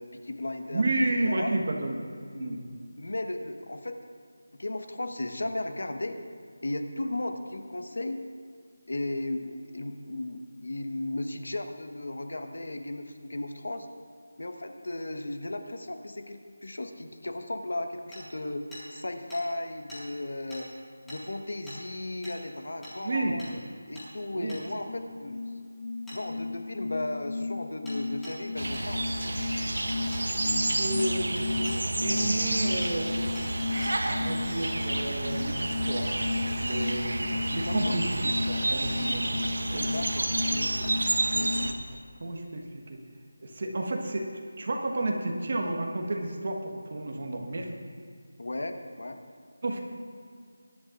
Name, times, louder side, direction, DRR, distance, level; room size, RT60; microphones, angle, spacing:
voice 1, 0.0-1.5 2.3-2.6 3.0-4.0 4.6-6.2 6.6-8.2 8.9-13.9 14.4-18.6 18.9-20.7 21.1-23.6 23.9-25.4 26.1-29.0 37.7-38.0 39.9-40.3 48.4-49.2, left 2 dB, 80° left, 6 dB, 1.3 m, -35 dB
voice 2, 0.7-2.0 2.4-2.6 23.0-23.4 24.3-24.6 30.5-31.7 32.0-33.1 34.0-36.2 36.6-37.2 37.5-39.9 40.5-40.9 41.3-41.7 42.2-43.0 43.4-44.3 44.6-47.7 49.6-49.8, right 2 dB, 40° right, 2 dB, 1.4 m, -31 dB
Hammer, 18.1-18.2 18.7-18.8 19.3-19.4 19.9-20.0 20.5-20.6 21.1-21.2 21.7-21.8 22.2-22.4 22.8-22.9 23.4-23.5 23.9-24.1 24.5-24.6 26.1-26.2 27.8-28.0 28.2-28.4 28.7-28.9 29.2-29.3 29.8-30.2 30.7-31.1 31.6-31.8 32.2-32.5 32.8-32.9 33.3-33.5 33.8-33.9, equal, 5° left, 1.9 m, -44 dB
sound 1, 24.9-41.7, left 3 dB, 50° left, 0.4 m, -34 dB
sound 2, 28.6-41.7, right 2 dB, 85° right, 1.1 m, -30 dB
22.0 x 11.0 x 2.5 m, 2.2 s
figure-of-eight pair, 175°, 0 cm